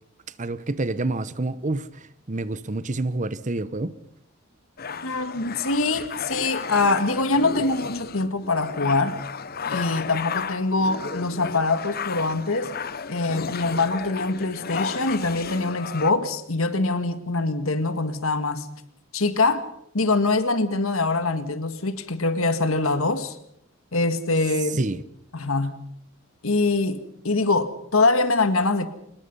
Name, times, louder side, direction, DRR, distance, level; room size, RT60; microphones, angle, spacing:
voice 1, 0.4-3.9 5.1-5.2 24.8-25.0, right 2 dB, 35° right, 0.9 m, -28 dB
sound 1, 4.8-16.1, left 5 dB, 45° left, 0.9 m, -33 dB
voice 2, 5.0-9.2 9.7-12.8 13.1-18.7 19.1-19.7 19.9-23.4 23.9-24.8 25.3-25.8 26.4-28.9, left 3 dB, 80° left, 1.9 m, -24 dB
25.0 x 21.0 x 5.6 m
head